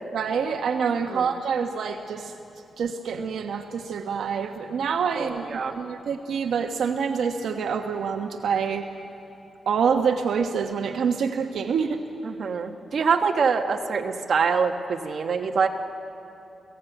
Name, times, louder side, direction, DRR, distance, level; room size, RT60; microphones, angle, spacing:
voice 1, 0.1-2.3 2.8-8.9 9.7-12.0, right 6 dB, 75° right, 4 dB, 1.2 m, -26 dB
voice 2, 5.1-5.7 12.2-15.7, right 5 dB, 50° right, 3 dB, 1.6 m, -25 dB
29.0 x 17.5 x 9.3 m, 2.8 s
wide cardioid pair, 150°, 0 cm